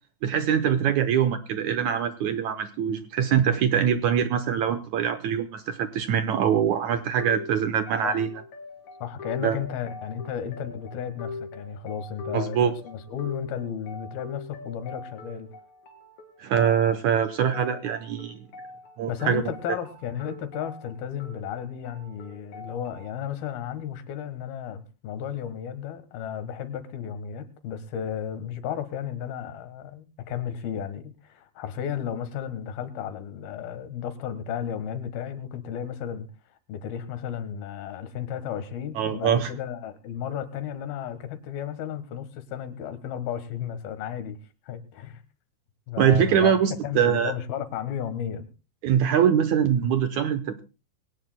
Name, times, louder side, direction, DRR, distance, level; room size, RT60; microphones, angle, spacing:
voice 1, 0.2-8.3 9.4-9.6 12.3-12.7 16.4-18.4 19.0-19.4 39.0-39.5 46.0-47.3 48.8-50.6, right 8 dB, 75° right, 9 dB, 1.8 m, -23 dB
sound 1, 7.2-23.2, left 3 dB, 55° left, 3.5 m, -42 dB
voice 2, 9.0-15.5 19.1-36.3 36.7-44.4 44.6-45.2 45.9-48.5, left 9 dB, 85° left, 11 dB, 3.3 m, -33 dB
22.0 x 18.0 x 2.2 m, 0.31 s
omnidirectional pair, 4.2 m